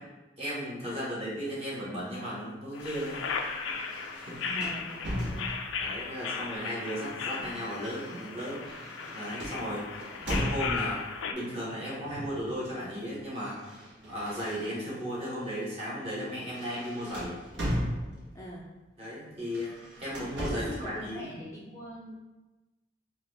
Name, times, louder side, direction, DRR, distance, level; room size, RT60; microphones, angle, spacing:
voice 1, 0.4-3.2 4.1-4.4 5.8-8.6 9.1-11.0 11.3-13.6 14.1-17.4 19.0-19.7 20.0-21.3, equal, 30° right, -8 dB, 1.4 m, -35 dB
sound 1, 2.7-11.3, left 5 dB, 85° left, 0.4 m, -36 dB
wood door old rattly open close creak edge catch on floor, 2.8-5.9 6.8-11.0 12.1-12.4 12.7-15.0 15.5-15.7 16.1-18.5 19.4-20.9, equal, 70° right, 1.2 m, -38 dB
voice 2, 4.4-5.5 18.3-18.7 20.4-22.1, equal, 15° left, -5 dB, 0.4 m, -42 dB
4.1 x 2.5 x 3.9 m, 1.1 s
head